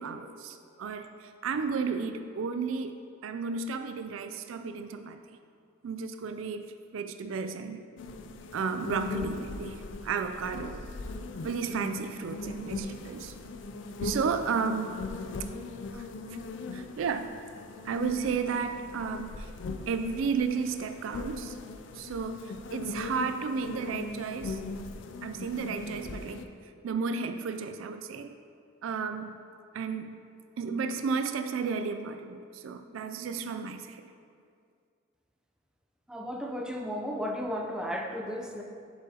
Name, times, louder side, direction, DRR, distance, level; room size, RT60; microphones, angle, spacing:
voice 1, 0.0-3.0 3.2-5.2 5.8-6.6 6.9-7.8 8.5-10.9 11.4-13.3 14.0-15.0 15.9-16.4 16.7-17.3 17.8-19.5 19.9-21.6 21.9-24.6 25.2-26.4 26.8-28.3 28.8-29.3 29.7-30.2 30.6-34.0, right 5 dB, 85° right, 8 dB, 0.4 m, -33 dB
sound 1, 8.0-26.4, left 3 dB, 65° left, 0.4 m, -40 dB
voice 2, 36.1-38.6, equal, 5° right, 1 dB, 0.5 m, -34 dB
7.6 x 7.1 x 2.8 m, 2.3 s
head